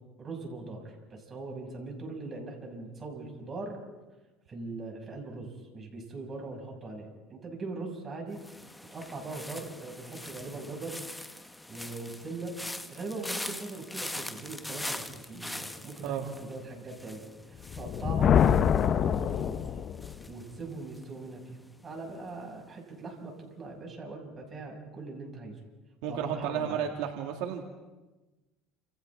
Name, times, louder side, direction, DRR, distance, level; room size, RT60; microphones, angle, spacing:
voice 1, 0.2-3.8 4.5-8.4 8.9-11.0 11.7-12.6 12.9-17.2 17.5-18.3 18.8-19.6 20.3-25.6 26.1-26.8, right 3 dB, 25° right, 0 dB, 5.9 m, -41 dB
sound 1, 8.4-21.4 21.7-22.1, left 1 dB, 5° left, 0.9 m, -43 dB
Thunder, 17.6-20.3, left 8 dB, 35° left, 0.7 m, -25 dB
voice 2, 26.0-27.6, right 8 dB, 75° right, 2 dB, 2.1 m, -32 dB
30.0 x 27.0 x 3.6 m, 1.2 s
cardioid pair, 135°, 0 cm